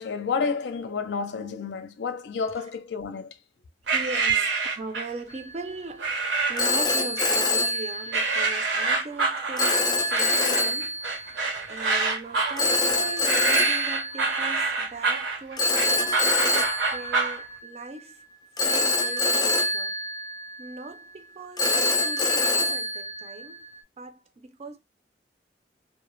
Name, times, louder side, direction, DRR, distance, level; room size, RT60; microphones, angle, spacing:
voice 1, 0.0-3.3, left 5 dB, 80° left, 0.4 m, -30 dB
voice 2, 3.9-11.4 11.7-16.2 16.9-18.3 18.6-19.9 20.6-23.7 24.0-24.8, right 3 dB, 35° right, 0.4 m, -39 dB
sound 1, 3.9-5.2 6.0-6.8 7.2-7.8 8.1-17.4, right 4 dB, 75° right, 0.7 m, -26 dB
Telephone, 5.3-5.6 6.6-8.6 9.6-11.3 12.6-14.7 15.6-17.9 18.6-20.9 21.6-23.8, left 2 dB, 20° left, 0.4 m, -25 dB
2.2 x 2.0 x 3.0 m
head